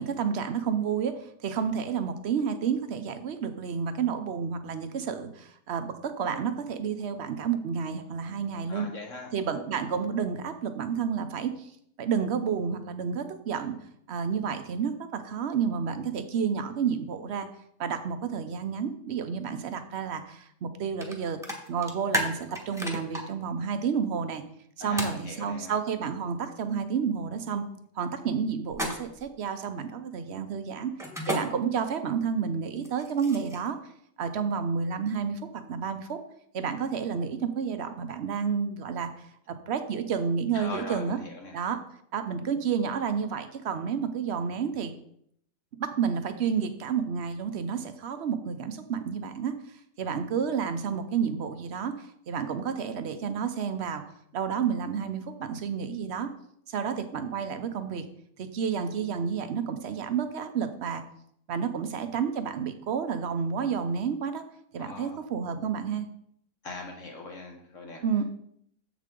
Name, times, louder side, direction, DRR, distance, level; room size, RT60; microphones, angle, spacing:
voice 1, 0.0-8.9 9.3-11.7 12.0-13.7 14.1-17.5 17.8-21.4 21.7-24.4 24.8-27.6 28.0-30.9 31.3-33.8 34.2-35.4 35.7-36.2 36.5-39.1 39.5-41.2 41.5-41.8 42.1-44.9 45.8-49.5 50.0-54.0 54.3-56.3 56.7-58.0 58.4-61.0 61.5-64.4 64.7-66.1 68.0-68.2, right 6 dB, 55° right, 9 dB, 0.8 m, -30 dB
voice 2, 8.7-9.3 24.8-25.8 40.5-41.6 64.8-65.2 66.6-68.0, left 3 dB, 55° left, 1 dB, 1.4 m, -40 dB
sound 1, 21.0-21.1 21.4-23.2 25.0-25.2 28.7-29.3 31.0-31.4 32.8-33.7, equal, ahead, 1.1 m, -31 dB
7.5 x 7.0 x 3.8 m, 0.69 s
omnidirectional pair, 1.6 m